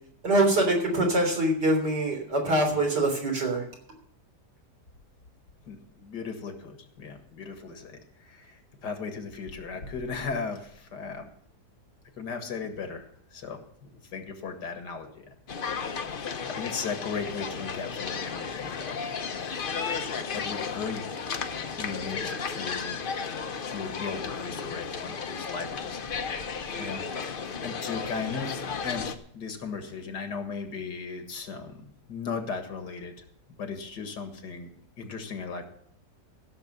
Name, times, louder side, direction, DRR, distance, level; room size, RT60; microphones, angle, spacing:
voice 1, 0.2-3.6, right 1 dB, 90° right, 1 dB, 4.1 m, -24 dB
voice 2, 5.7-11.3 12.2-15.3 16.5-19.1 20.3-21.1 21.8-23.1 23.7-33.1 33.6-34.7 35.0-35.7, left 5 dB, 85° left, 6 dB, 2.4 m, -37 dB
sound 1, 15.5-29.2, left 5 dB, 45° left, 0.8 m, -34 dB
15.5 x 6.7 x 6.8 m, 0.68 s
omnidirectional pair, 1.8 m